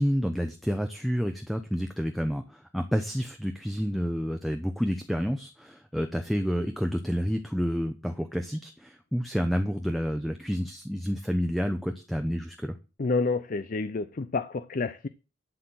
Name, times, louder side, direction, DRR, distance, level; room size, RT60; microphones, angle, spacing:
voice 1, 0.0-12.8, equal, ahead, 0.7 m, -29 dB
voice 2, 13.0-15.1, left 3 dB, 45° left, 0.5 m, -29 dB
11.5 x 4.3 x 7.6 m
head